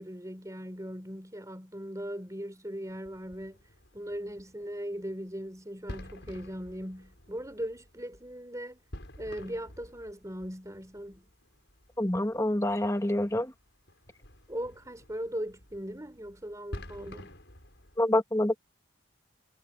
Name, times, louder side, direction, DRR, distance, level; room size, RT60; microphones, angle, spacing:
voice 1, 0.0-3.6 3.9-8.8 9.2-11.3 14.5-17.4, equal, 15° right, 4.1 m, -39 dB
sound 1, 2.9-18.0, left 1 dB, 60° left, 7.5 m, -50 dB
voice 2, 12.0-13.5 18.0-18.6, left 1 dB, 15° left, 1.8 m, -27 dB
head